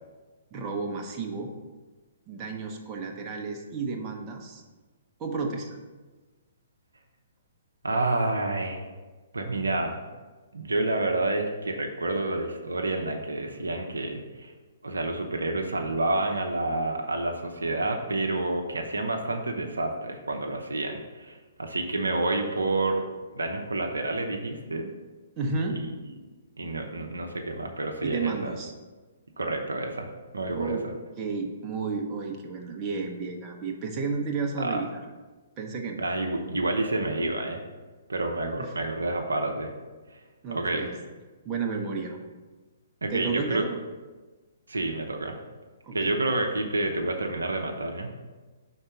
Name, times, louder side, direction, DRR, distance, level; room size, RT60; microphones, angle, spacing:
voice 1, 0.5-1.5 2.3-4.6 5.2-5.8 25.4-25.8 28.0-28.7 30.5-30.8 31.2-35.0 35.6-36.0 38.6-38.7 40.4-41.0 41.4-42.2 43.1-43.8 45.8-46.1, right 4 dB, 25° right, 1 dB, 0.8 m, -32 dB
voice 2, 7.8-8.9 9.3-10.0 10.5-14.5 14.8-23.0 23.4-24.9 25.8-25.9 26.6-28.5 29.4-30.8 34.6-34.8 36.0-37.6 38.1-39.7 40.1-40.2 40.5-40.9 43.0-43.6 44.7-45.4 45.9-48.1, right 2 dB, 75° right, 3 dB, 0.7 m, -29 dB
5.4 x 3.9 x 6.0 m, 1.3 s
figure-of-eight pair, 125°, 0 cm